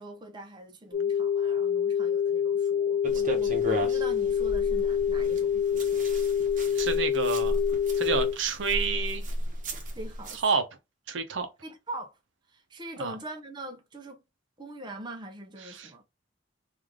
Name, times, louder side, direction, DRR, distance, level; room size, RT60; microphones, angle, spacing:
voice 1, 0.0-6.1 9.9-10.4 11.6-12.2 12.5-14.2 14.6-16.0, right 1 dB, 25° right, 0.6 m, -42 dB
sound 1, 0.9-8.3, left 8 dB, 40° left, 1.4 m, -26 dB
sound 2, 3.0-10.4, equal, 40° right, 1.0 m, -35 dB
voice 2, 6.8-7.6 8.0-9.2 10.3-10.6 11.1-11.5 13.0-13.1 15.6-16.0, right 5 dB, 65° right, 0.7 m, -29 dB
3.3 x 2.5 x 3.5 m
head